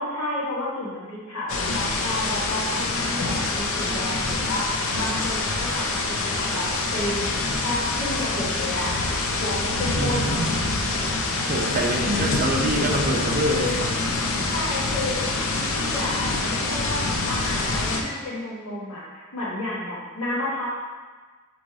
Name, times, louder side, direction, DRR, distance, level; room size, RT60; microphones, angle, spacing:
voice 1, 0.0-7.3 7.6-8.9 9.4-10.4 14.5-17.0 17.3-20.7, left 1 dB, 85° left, -7 dB, 1.5 m, -31 dB
sound 1, 1.5-18.0, left 3 dB, 65° left, 0.5 m, -26 dB
voice 2, 9.8-10.5 11.4-13.8, right 1 dB, 40° right, 0 dB, 0.5 m, -26 dB
4.1 x 3.1 x 3.5 m, 1.4 s
head